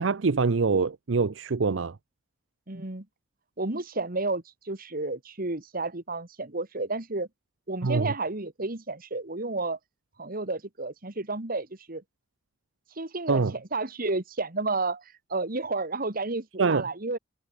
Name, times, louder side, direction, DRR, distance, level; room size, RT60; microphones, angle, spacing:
voice 1, 0.0-2.0 7.8-8.1 13.3-13.5 16.6-16.8, right 4 dB, 80° right, 0.6 m, -24 dB
voice 2, 2.7-3.1 3.6-7.3 7.7-9.8 10.2-12.0 13.0-15.0 15.3-17.2, right 3 dB, 50° right, 2.1 m, -31 dB
head